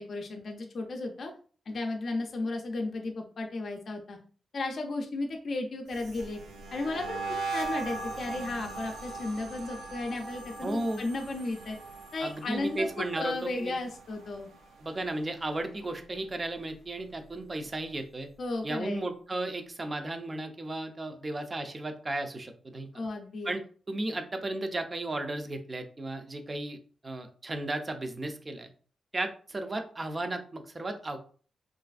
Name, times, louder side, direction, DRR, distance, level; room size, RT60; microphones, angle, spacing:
voice 1, 0.0-1.3 1.7-4.2 4.5-6.4 6.7-11.8 12.1-14.5 18.4-19.1 22.9-23.5, left 2 dB, 55° left, 2 dB, 0.4 m, -34 dB
sound 1, 5.9-15.1 15.3-15.8 16.1-17.7, right 3 dB, 85° right, 0.5 m, -40 dB
voice 2, 10.6-11.0 12.2-13.8 14.8-18.3 18.6-22.9 23.4-23.6 23.9-26.8 27.0-28.7 29.1-31.2, right 2 dB, 30° right, 6 dB, 0.4 m, -34 dB
3.1 x 2.4 x 2.4 m, 0.42 s
cardioid pair, 105°, 0 cm